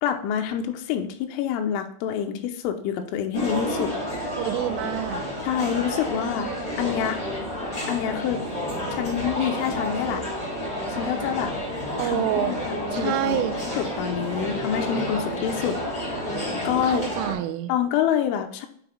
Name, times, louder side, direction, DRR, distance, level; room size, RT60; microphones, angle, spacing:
voice 1, 0.0-3.9 5.4-6.5 6.8-7.2 7.9-8.4 8.9-10.2 10.9-11.5 12.0-16.3 16.6-17.0 17.7-18.7, left 9 dB, 85° left, 6 dB, 3.1 m, -27 dB
sound 1, 3.3-17.3, equal, 15° left, 2.7 m, -30 dB
voice 2, 4.4-5.2 12.0-12.5 12.9-13.6 16.8-17.7, right 13 dB, 85° right, 10 dB, 3.2 m, -27 dB
7.7 x 5.0 x 3.7 m, 0.63 s
omnidirectional pair, 5.7 m